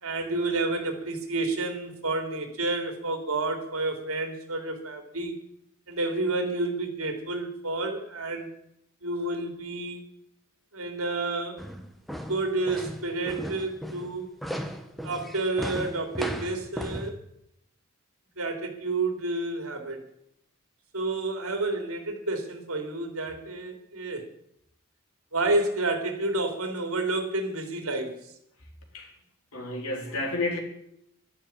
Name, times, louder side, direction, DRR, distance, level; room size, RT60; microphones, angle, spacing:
voice 1, 0.0-5.3 5.9-8.5 9.0-10.0 10.7-11.6 12.3-14.3 15.0-17.2 18.4-20.0 20.9-24.3 25.3-28.2, right 2 dB, 80° right, 3.3 m, -30 dB
sound 1, 11.6-17.1, equal, ahead, 1.2 m, -36 dB
voice 2, 29.5-30.6, left 2 dB, 85° left, 3.9 m, -30 dB
12.0 x 12.0 x 8.8 m
head